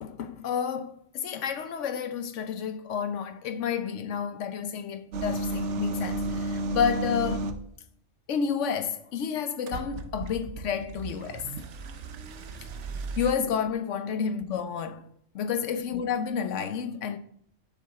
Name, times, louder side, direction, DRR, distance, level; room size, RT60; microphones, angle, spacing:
voice 1, 0.0-7.4 8.3-11.4 13.2-15.0 15.3-17.2, left 7 dB, 75° left, 1.0 m, -30 dB
sound 1, 5.1-7.7 9.7-13.3, right 2 dB, 70° right, 1.0 m, -33 dB
7.3 x 6.0 x 4.1 m
omnidirectional pair, 1.3 m